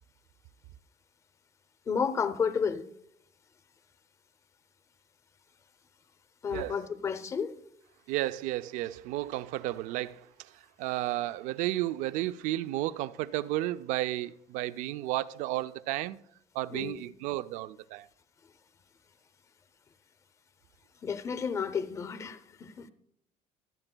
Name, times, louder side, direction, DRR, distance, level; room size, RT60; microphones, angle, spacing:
voice 1, 1.9-2.9 6.4-7.6 16.7-17.1 21.0-22.9, left 6 dB, 25° left, 0.6 m, -32 dB
voice 2, 6.5-6.8 8.1-10.3 10.8-16.2 16.5-18.1, right 15 dB, 75° right, 0.4 m, -32 dB
24.0 x 8.8 x 2.2 m
cardioid pair, 165°, 13 cm